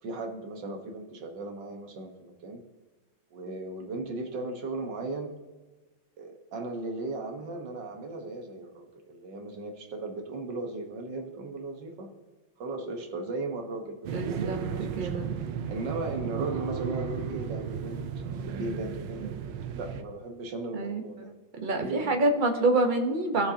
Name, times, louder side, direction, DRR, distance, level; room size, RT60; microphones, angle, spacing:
voice 1, 0.0-2.6 3.3-5.3 6.2-12.1 12.6-15.2 15.7-18.1 18.5-19.4 19.7-21.3 21.7-22.2, right 2 dB, 65° right, 4 dB, 1.7 m, -37 dB
sound 1, 14.0-20.0, right 7 dB, 85° right, 1.5 m, -34 dB
voice 2, 14.1-15.3 20.7-21.0 21.6-23.5, right 2 dB, 40° right, 4 dB, 0.7 m, -27 dB
17.5 x 6.5 x 2.8 m, 1.2 s
omnidirectional pair, 2.2 m